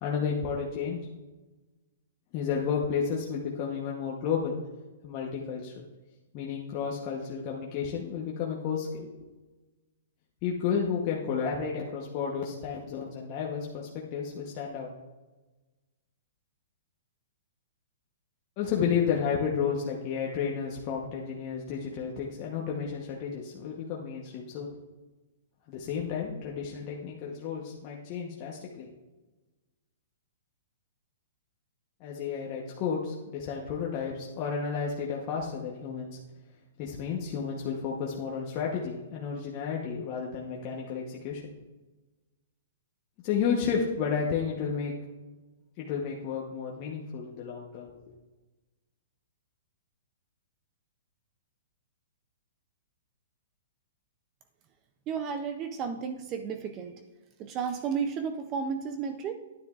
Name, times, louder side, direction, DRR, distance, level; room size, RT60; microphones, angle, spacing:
voice 1, 0.0-1.1 2.3-4.5 5.0-5.8 6.3-9.1 10.4-14.9 18.6-24.8 25.7-28.9 32.0-36.2 36.8-41.5 43.2-44.9 45.8-47.9, left 6 dB, 35° left, -2 dB, 0.9 m, -32 dB
voice 2, 55.1-56.9 57.4-59.4, right 6 dB, 25° right, 8 dB, 0.5 m, -33 dB
10.0 x 9.6 x 2.4 m, 1.2 s
hypercardioid pair, 150°, 0 cm